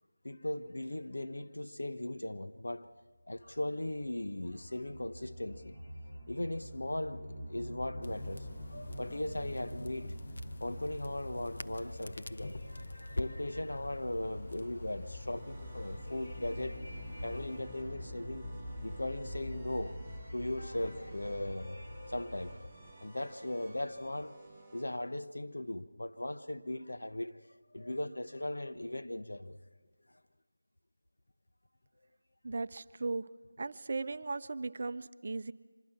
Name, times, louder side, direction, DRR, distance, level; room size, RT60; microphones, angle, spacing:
voice 1, 0.2-2.9 3.3-5.8 6.0-10.2 10.6-18.4 18.8-20.0 20.3-22.7 23.0-24.4 24.7-27.4 27.7-29.6, left 1 dB, 75° left, 1.1 m, -38 dB
sound 1, 3.4-22.6, equal, 20° left, 4.5 m, -46 dB
Crackle, 8.0-17.6, left 2 dB, 50° left, 0.8 m, -46 dB
sound 2, 12.3-24.8, right 2 dB, 5° left, 7.6 m, -56 dB
voice 2, 32.4-33.3 33.6-35.5, right 3 dB, 40° right, 0.6 m, -37 dB
25.5 x 20.5 x 5.9 m
figure-of-eight pair, 170°, 0 cm